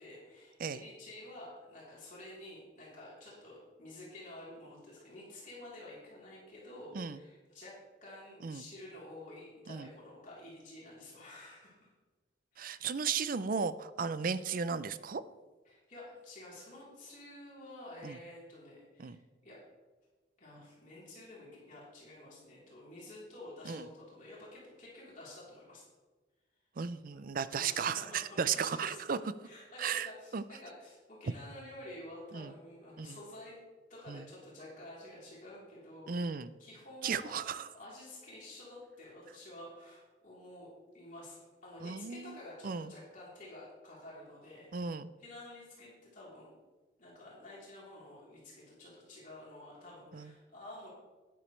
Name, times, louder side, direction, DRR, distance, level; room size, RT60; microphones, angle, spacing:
voice 1, 0.0-7.7 8.0-11.9 12.5-13.1 15.7-19.2 19.4-19.6 20.4-25.8 27.1-27.2 27.5-29.0 29.4-33.6 33.9-37.4 37.7-40.7 40.9-44.9 45.2-46.5 47.0-50.9, left 1 dB, 45° left, -7 dB, 3.6 m, -50 dB
voice 2, 12.6-15.2 18.0-18.2 19.0-19.2 23.7-23.9 26.8-29.2 29.8-30.4 32.3-32.5 33.0-33.2 34.1-34.2 36.1-36.5 37.0-37.7 41.8-42.4 42.6-42.9 44.7-45.1 50.1-50.3, right 6 dB, 50° right, 14 dB, 0.5 m, -35 dB
12.0 x 10.0 x 3.3 m, 1.3 s
head